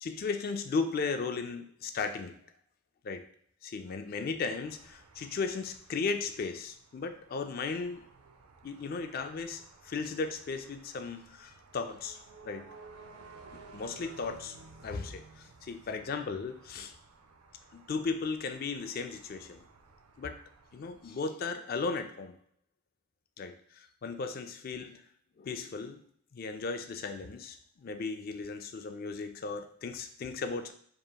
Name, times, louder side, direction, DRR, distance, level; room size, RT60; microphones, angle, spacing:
voice 1, 0.0-2.3 3.0-3.2 3.6-8.0 8.6-12.7 13.5-14.6 14.8-16.9 17.7-19.6 20.2-20.4 20.7-22.4 23.4-25.0 25.4-26.0 26.3-30.7, left 4 dB, 40° left, 7 dB, 0.3 m, -36 dB
sound 1, 4.6-21.2, right 4 dB, 80° right, 0.5 m, -56 dB
5.1 x 2.9 x 2.3 m, 0.62 s
head